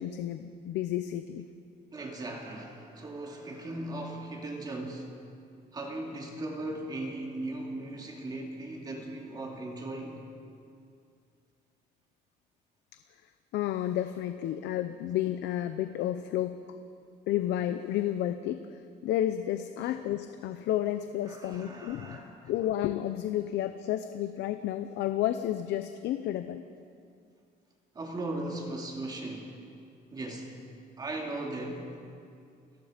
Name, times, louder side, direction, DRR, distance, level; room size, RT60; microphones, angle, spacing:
voice 1, 0.0-1.5 13.5-16.6 17.3-22.2 22.4-26.6, left 12 dB, 85° left, 9 dB, 0.8 m, -31 dB
voice 2, 1.9-5.2 5.7-10.2 21.3-22.3 27.9-29.6 30.1-30.5 31.0-31.9, right 2 dB, 25° right, 1 dB, 2.5 m, -38 dB
30.0 x 18.5 x 5.2 m, 2.4 s
cardioid pair, 175°, 17 cm